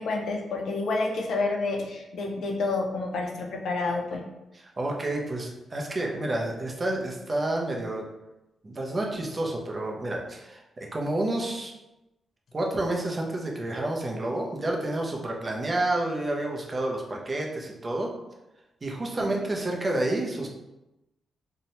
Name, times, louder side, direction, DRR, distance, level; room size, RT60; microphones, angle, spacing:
voice 1, 0.0-4.2 19.2-19.3, left 3 dB, 65° left, 1 dB, 0.4 m, -29 dB
voice 2, 4.8-8.1 8.6-11.7 12.5-18.1 18.8-20.5, right 1 dB, 25° right, 0 dB, 0.5 m, -29 dB
2.7 x 2.1 x 2.9 m, 0.96 s
wide cardioid pair, 145°, 0 cm